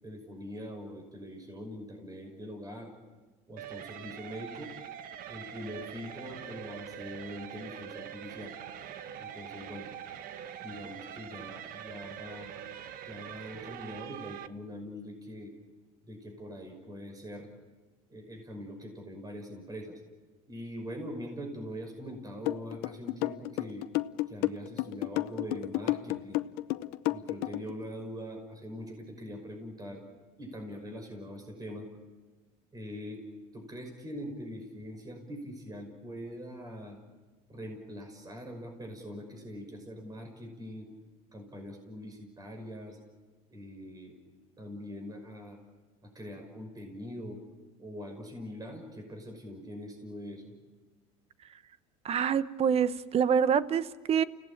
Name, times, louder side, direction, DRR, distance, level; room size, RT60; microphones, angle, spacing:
voice 1, 0.0-2.9 3.5-4.7 5.3-8.5 9.2-9.9 10.6-12.5 13.0-15.5 16.1-17.5 18.1-20.0 20.5-23.8 24.3-26.4 27.1-30.0 30.4-31.9 32.7-33.2 33.5-37.0 37.5-40.9 41.3-43.0 43.5-44.1 44.6-45.6 46.0-47.4 47.8-50.5, equal, 20° right, 3 dB, 5.8 m, -43 dB
sound 1, 3.6-14.5, right 9 dB, 60° right, 1.2 m, -44 dB
sound 2, 22.5-27.7, left 19 dB, 70° left, 0.8 m, -31 dB
voice 2, 52.0-54.2, right 7 dB, 40° right, 14 dB, 1.1 m, -26 dB
29.5 x 17.0 x 8.8 m, 1.3 s
supercardioid pair, 105°, 17 cm